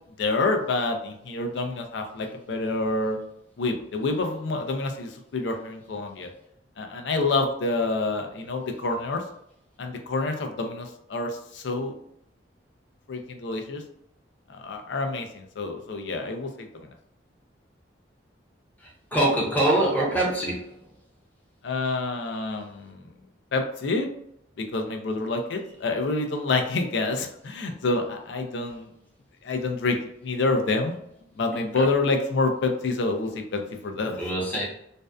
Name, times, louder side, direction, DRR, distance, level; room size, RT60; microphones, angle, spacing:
voice 1, 0.2-3.2 3.6-6.3 6.8-9.2 9.8-12.0 13.1-13.8 14.5-16.7 21.6-23.1 23.5-24.1 24.6-28.9 29.4-31.0 31.4-34.2, left 3 dB, 65° left, 4 dB, 0.4 m, -27 dB
voice 2, 19.1-20.6 34.2-34.6, right 1 dB, 10° left, -5 dB, 0.7 m, -23 dB
2.5 x 2.1 x 2.3 m, 0.73 s
head